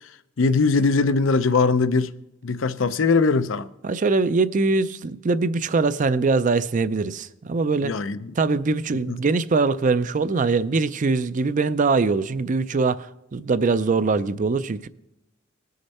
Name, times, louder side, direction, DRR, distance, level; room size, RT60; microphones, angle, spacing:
voice 1, 0.4-2.1 2.4-3.7 7.8-8.3 9.1-9.2, left 4 dB, 80° left, 0.6 m, -21 dB
voice 2, 3.8-8.0 8.4-14.9, right 4 dB, 40° right, 0.5 m, -22 dB
20.0 x 6.6 x 4.2 m
head